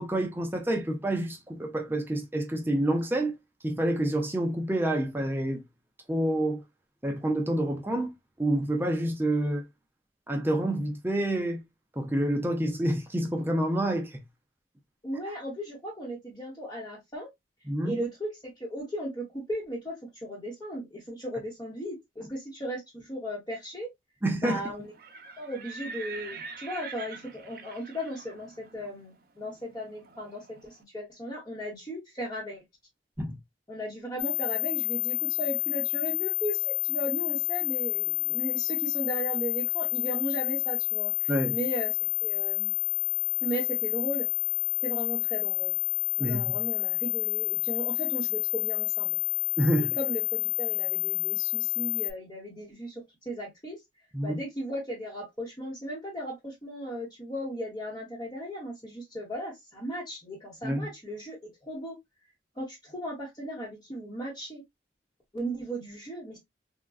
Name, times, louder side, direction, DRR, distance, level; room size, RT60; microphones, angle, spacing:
voice 1, 0.0-3.3 3.6-5.6 6.1-6.6 7.0-9.6 10.3-11.6 12.0-14.2 17.7-18.0 24.2-24.6 33.2-33.4 41.3-41.6 46.2-46.5 49.6-49.9 54.1-54.4 60.6-60.9, right 1 dB, 10° right, 0.5 m, -28 dB
voice 2, 15.0-17.3 17.8-23.9 24.4-24.9 25.4-32.6 33.7-42.7 43.4-44.3 44.8-45.7 46.2-49.2 49.8-53.8 54.2-62.0 62.5-64.6 65.3-66.4, equal, 20° left, 1.0 m, -37 dB
Livestock farm animals working animals, 24.8-30.7, right 4 dB, 55° right, 0.6 m, -44 dB
sound 1, 34.2-52.1, left 10 dB, 65° left, 0.3 m, -29 dB
3.6 x 2.2 x 2.3 m
head